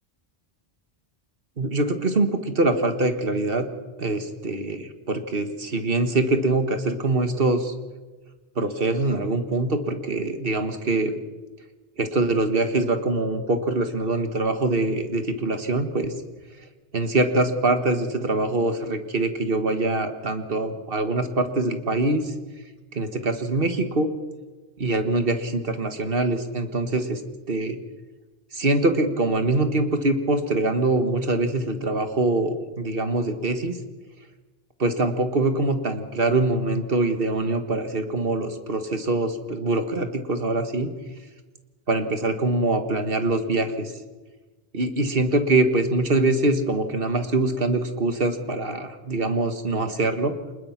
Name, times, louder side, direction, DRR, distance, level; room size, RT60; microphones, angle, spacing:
voice 1, 1.6-3.7 4.0-7.7 8.6-11.2 12.0-16.1 16.9-22.3 22.9-24.1 24.8-27.2 27.5-27.8 28.5-33.8 34.8-40.9 41.9-43.9 44.7-50.3, right 2 dB, 65° right, 8 dB, 1.9 m, -24 dB
26.5 x 20.5 x 6.0 m, 1.2 s
omnidirectional pair, 1.0 m